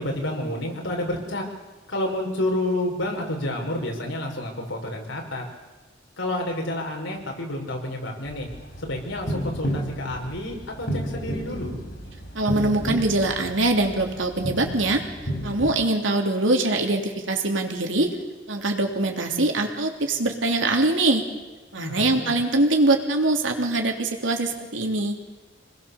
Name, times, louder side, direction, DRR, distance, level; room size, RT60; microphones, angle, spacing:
voice 1, 0.0-1.4 1.9-5.4 6.2-8.5 8.8-11.8 21.7-22.3, left 1 dB, 80° left, 1 dB, 5.5 m, -29 dB
sound 1, 8.3-15.7, equal, 60° left, 5.0 m, -32 dB
voice 2, 12.3-15.0 15.4-18.2 18.5-21.2 21.7-25.1, right 2 dB, 85° right, 3 dB, 3.3 m, -23 dB
27.0 x 20.5 x 7.3 m, 1.2 s
head